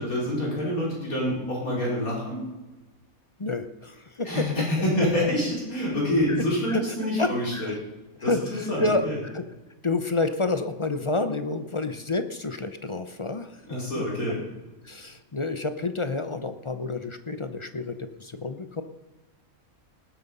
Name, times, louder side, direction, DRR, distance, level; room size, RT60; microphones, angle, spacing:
voice 1, 0.0-2.4 4.3-7.7 8.2-9.2 13.7-14.4, left 1 dB, 80° left, -4 dB, 5.1 m, -27 dB
voice 2, 3.4-4.4 6.3-7.8 8.2-9.4 9.8-14.0 14.8-18.8, left 3 dB, 35° left, 9 dB, 0.5 m, -29 dB
19.0 x 8.2 x 5.4 m, 1.1 s
omnidirectional pair, 1.5 m